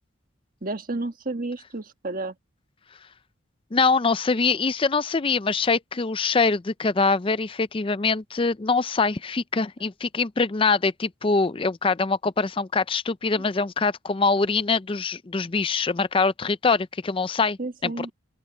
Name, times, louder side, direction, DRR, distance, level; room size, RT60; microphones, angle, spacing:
voice 1, 0.6-2.3 13.3-13.4 17.6-18.1, right 2 dB, 45° right, 1.4 m, -31 dB
voice 2, 3.7-18.1, left 4 dB, 25° left, 0.4 m, -24 dB
open air
head